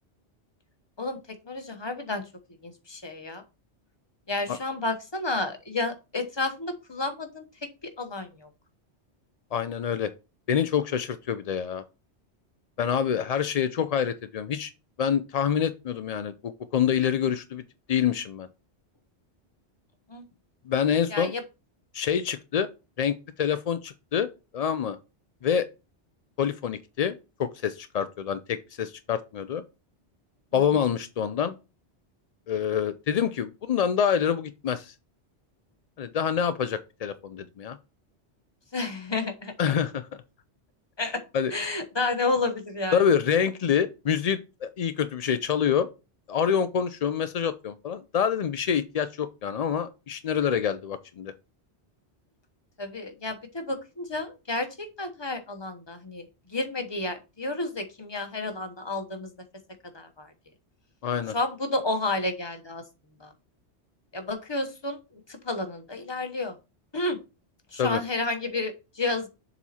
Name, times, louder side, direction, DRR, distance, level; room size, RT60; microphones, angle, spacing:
voice 1, 1.4-2.2 2.6-3.4 4.3-7.4 8.0-8.5 20.1-20.2 21.1-21.4 38.7-39.5 41.0-41.2 41.5-43.0 52.8-56.2 56.5-59.3 59.9-60.3 61.3-62.8 63.2-63.3 64.1-65.0 65.3-66.6 66.9-67.2 67.7-69.3, left 2 dB, 25° left, 7 dB, 1.0 m, -31 dB
voice 2, 9.5-10.1 10.5-11.8 12.8-14.7 15.0-17.6 17.9-18.5 20.7-21.3 21.9-22.7 23.0-24.3 24.5-25.0 25.4-25.7 26.4-29.6 30.5-31.5 32.5-34.9 36.0-37.8 39.6-40.1 41.3-41.5 42.9-45.9 46.3-51.3 61.0-61.3 67.8-68.0, left 8 dB, 65° left, 11 dB, 0.4 m, -26 dB
7.2 x 4.1 x 4.2 m, 0.28 s
omnidirectional pair, 1.2 m